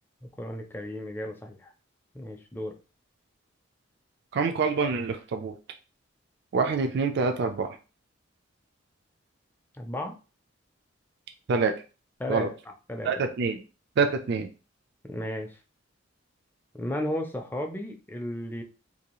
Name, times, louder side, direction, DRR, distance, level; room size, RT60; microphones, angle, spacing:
voice 1, 0.4-1.7 2.1-2.8 9.8-10.1 12.2-12.5 12.9-13.1 15.0-15.5 16.7-18.6, left 1 dB, 10° left, 4 dB, 0.4 m, -34 dB
voice 2, 4.3-5.5 6.5-7.8 11.5-11.7 12.3-12.5 13.0-13.6 14.0-14.5, right 4 dB, 60° right, 5 dB, 0.4 m, -26 dB
2.6 x 2.3 x 2.9 m, 0.33 s
head